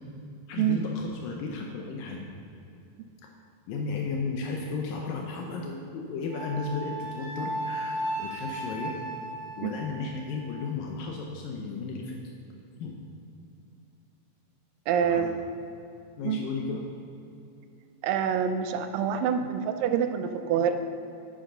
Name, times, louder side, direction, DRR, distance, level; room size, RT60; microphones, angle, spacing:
voice 1, 0.5-2.3 3.7-9.0 9.6-12.2 12.8-13.0 15.0-15.3 16.2-16.8, left 4 dB, 85° left, 0 dB, 2.5 m, -34 dB
Wind instrument woodwind instrument, 6.3-10.7, right 1 dB, 55° right, 1.7 m, -36 dB
voice 2, 14.9-15.3 16.2-16.4 18.0-20.7, right 8 dB, 90° right, 7 dB, 2.4 m, -26 dB
10.0 x 10.0 x 3.9 m, 2.6 s
omnidirectional pair, 3.9 m